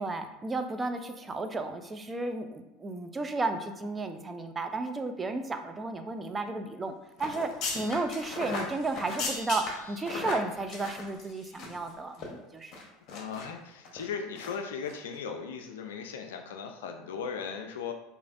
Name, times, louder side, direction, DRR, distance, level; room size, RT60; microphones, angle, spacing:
voice 1, 0.0-6.9 7.2-12.7, right 3 dB, 20° right, 7 dB, 0.4 m, -33 dB
sound 1, 7.2-11.9 12.1-12.3 12.7-13.5 13.8-14.0 14.4-14.6 14.8-14.9, left 3 dB, 50° left, 1.0 m, -37 dB
voice 2, 13.1-17.9, left 6 dB, 85° left, 4 dB, 0.3 m, -38 dB
4.9 x 2.5 x 2.5 m, 0.99 s
hypercardioid pair, 85°, 0 cm